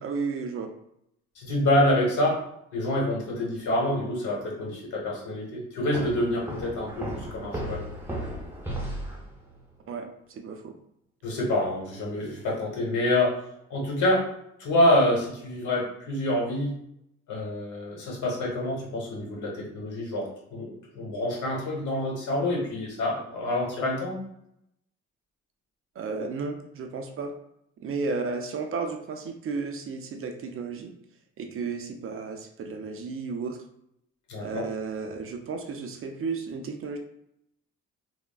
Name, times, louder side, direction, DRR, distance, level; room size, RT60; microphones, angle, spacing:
voice 1, 0.0-0.7 9.9-10.7 26.0-27.3 27.8-30.9 31.4-33.7 34.4-37.0, right 4 dB, 45° right, 5 dB, 0.4 m, -33 dB
voice 2, 1.4-2.4 2.7-7.8 11.2-13.4 13.7-14.3 14.6-16.7 17.3-24.2 34.3-34.7, left 1 dB, 75° left, -2 dB, 1.1 m, -27 dB
sound 1, 5.9-9.6, equal, 5° right, 0.7 m, -35 dB
3.3 x 2.0 x 2.3 m, 0.75 s
cardioid pair, 90°, 30 cm